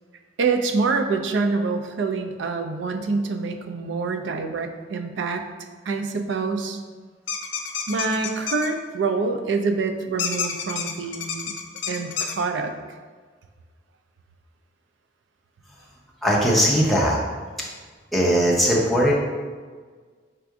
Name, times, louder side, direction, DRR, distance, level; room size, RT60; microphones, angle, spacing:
voice 1, 0.4-5.4 5.9-6.8 7.9-11.5 11.9-12.7, right 4 dB, 80° right, 6 dB, 0.4 m, -26 dB
sound 1, 7.3-8.7 10.2-12.3, left 7 dB, 85° left, 0.5 m, -29 dB
voice 2, 16.2-17.2 18.1-19.1, equal, ahead, -4 dB, 0.7 m, -19 dB
4.5 x 2.5 x 4.7 m, 1.5 s
head